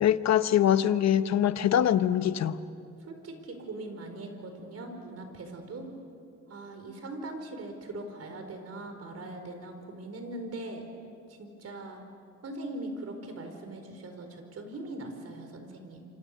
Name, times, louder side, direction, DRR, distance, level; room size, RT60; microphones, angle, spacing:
voice 1, 0.0-2.6, left 10 dB, 60° left, 12 dB, 1.0 m, -23 dB
voice 2, 3.0-5.9 6.5-10.8 11.3-12.0 12.4-16.0, right 2 dB, 55° right, 6 dB, 4.8 m, -41 dB
27.5 x 25.5 x 6.8 m, 2.4 s
cardioid pair, 90°, 30 cm